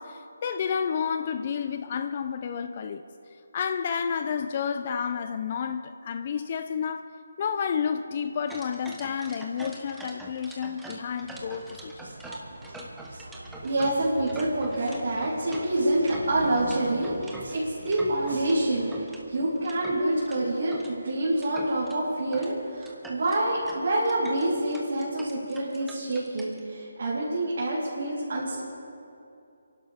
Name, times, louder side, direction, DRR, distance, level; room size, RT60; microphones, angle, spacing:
voice 1, 0.0-3.0 3.5-7.1 7.4-11.9, left 7 dB, 40° left, 0.5 m, -30 dB
sound 1, 8.5-18.6 18.9-20.9 21.3-22.0 22.3-22.5 22.8-26.6, right 1 dB, 5° right, 1.2 m, -44 dB
sound 2, 11.2-19.0, right 1 dB, 85° right, 2.7 m, -44 dB
voice 2, 13.6-28.6, right 1 dB, 60° right, 3.5 m, -27 dB
30.0 x 11.5 x 3.6 m
figure-of-eight pair, 155°, 0 cm